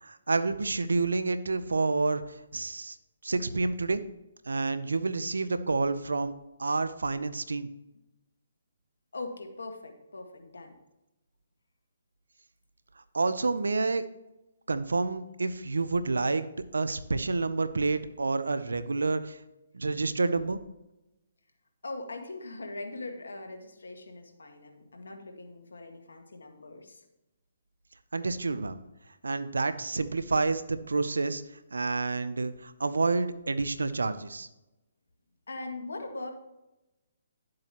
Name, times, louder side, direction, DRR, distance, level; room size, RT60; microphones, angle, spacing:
voice 1, 0.0-3.0 3.2-4.0 4.5-6.3 6.6-7.7 13.1-14.0 14.7-16.5 16.7-19.4 19.7-20.6 28.1-28.8 29.2-31.4 31.7-34.5, right 3 dB, 85° right, 12 dB, 0.6 m, -29 dB
voice 2, 9.1-10.8 21.8-27.0 35.5-36.3, left 2 dB, 80° left, 4 dB, 1.6 m, -41 dB
11.0 x 7.5 x 3.0 m, 0.94 s
hypercardioid pair, 145°, 0 cm